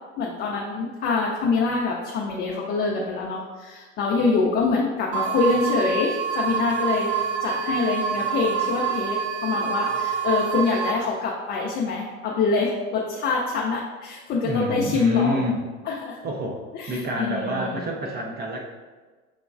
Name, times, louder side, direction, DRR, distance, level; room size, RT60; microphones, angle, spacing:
voice 1, 0.2-7.1 7.4-15.5 15.9-16.2 16.7-18.2, left 4 dB, 25° left, -2 dB, 0.5 m, -25 dB
sound 1, 5.1-10.9, right 7 dB, 65° right, 0.7 m, -26 dB
voice 2, 14.4-15.6 16.2-16.6 16.9-18.6, left 1 dB, 25° right, -1 dB, 0.5 m, -27 dB
6.1 x 2.9 x 2.4 m, 1.4 s
figure-of-eight pair, 70°, 40 cm